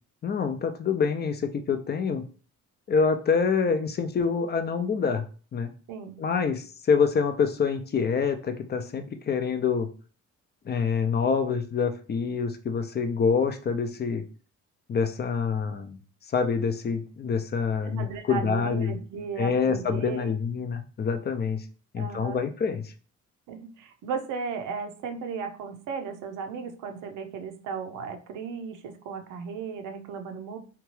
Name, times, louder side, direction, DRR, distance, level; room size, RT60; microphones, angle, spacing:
voice 1, 0.2-2.2 2.9-5.3 5.5-5.7 6.2-9.9 10.7-14.2 14.9-16.0 16.3-18.9 19.4-21.6 21.9-22.9, left 5 dB, 35° left, 8 dB, 0.4 m, -26 dB
voice 2, 5.9-6.2 17.8-20.3 22.0-22.4 23.5-30.6, right 5 dB, 90° right, 6 dB, 0.6 m, -35 dB
2.8 x 2.3 x 3.0 m, 0.39 s
cardioid pair, 90°, 30 cm